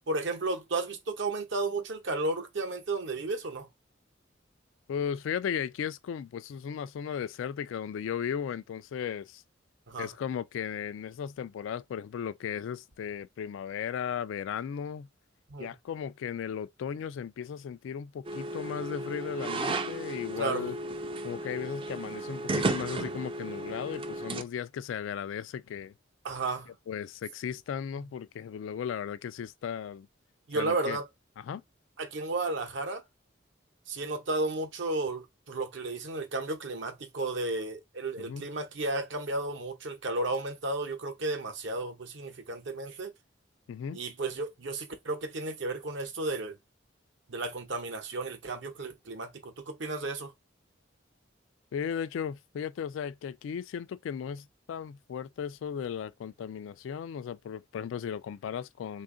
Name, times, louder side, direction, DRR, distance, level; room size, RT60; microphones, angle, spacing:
voice 1, 0.1-3.7 9.9-10.1 15.5-15.7 20.4-20.7 26.2-26.7 28.0-28.1 30.5-31.1 32.0-33.0 33.9-43.1 43.9-46.6 47.3-50.3, right 2 dB, 70° right, 0.9 m, -33 dB
voice 2, 4.9-9.4 10.0-15.1 15.6-20.8 21.2-25.9 26.9-30.1 30.5-31.0 31.5-31.6 38.2-38.5 43.7-44.0 51.7-59.0, left 8 dB, 80° left, 0.3 m, -36 dB
sound 1, 18.2-24.4, right 2 dB, 30° right, 0.4 m, -34 dB
3.4 x 2.5 x 3.7 m
head